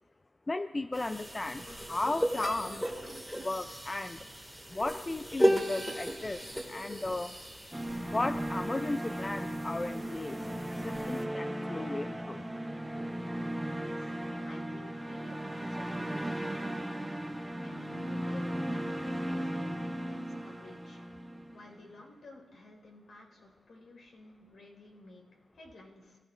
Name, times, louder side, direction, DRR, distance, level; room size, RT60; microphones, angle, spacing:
voice 1, 0.5-2.8 3.4-4.3 4.7-6.4 6.7-7.3 8.1-10.4 10.7-12.4, left 2 dB, 25° left, 10 dB, 0.4 m, -35 dB
sound 1, 0.9-11.2, equal, 5° left, 2.0 m, -35 dB
sound 2, 7.7-21.8, right 1 dB, 10° right, 0.9 m, -36 dB
voice 2, 13.8-16.9 17.6-21.0 21.5-25.2 25.5-26.2, left 2 dB, 65° left, 0 dB, 4.5 m, -54 dB
23.5 x 15.5 x 2.5 m, 1.3 s
cardioid pair, 85°, 0 cm